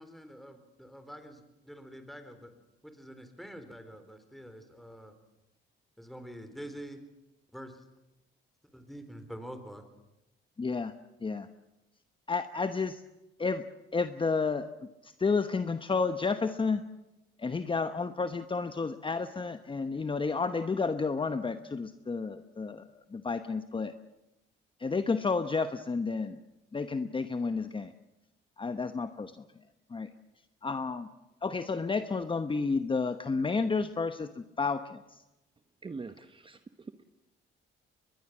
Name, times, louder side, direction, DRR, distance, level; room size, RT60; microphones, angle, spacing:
voice 1, 0.0-2.5 2.8-5.1 6.0-7.0 7.5-7.8 8.7-9.8, equal, ahead, 8 dB, 4.1 m, -46 dB
voice 2, 10.6-10.9 11.2-11.5 12.3-13.0 13.4-13.6 13.9-14.7 15.0-16.8 17.4-22.8 23.1-23.9 24.8-26.4 26.7-27.9 28.6-29.3 29.9-30.1 30.6-31.1 31.4-35.0, left 4 dB, 25° left, 10 dB, 1.1 m, -31 dB
voice 3, 35.8-37.0, right 4 dB, 25° right, 9 dB, 1.1 m, -44 dB
22.5 x 21.0 x 7.5 m, 0.98 s
cardioid pair, 90°, 20 cm